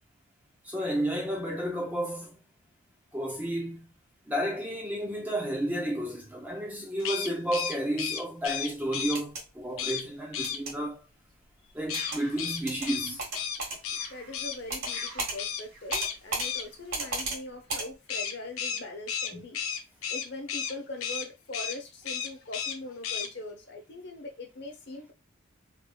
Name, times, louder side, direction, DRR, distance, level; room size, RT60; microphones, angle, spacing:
voice 1, 0.6-2.4 3.1-3.9 4.3-11.0 11.7-13.2 19.3-19.4, right 1 dB, 10° right, 0.6 m, -32 dB
sound 1, 7.0-9.2 9.8-10.0 10.3-10.6 11.9-14.6 14.9-15.1 15.4-15.6 15.9-16.6 18.1-20.7 21.0-21.3 21.5-21.8 22.0-22.8 23.0-23.3, left 8 dB, 75° left, 0.5 m, -33 dB
sound 2, 9.0-9.4 10.4-10.7 11.9-12.2 12.7-12.9 13.2-13.8 14.7-14.9 15.2-15.4 15.9-16.5 16.9-17.4 17.7-17.9, right 3 dB, 75° right, 1.7 m, -33 dB
sound 3, 11.9-17.0, right 2 dB, 60° right, 1.7 m, -50 dB
voice 2, 14.1-19.6 20.1-25.1, left 2 dB, 50° left, 0.9 m, -41 dB
3.6 x 3.3 x 2.2 m
head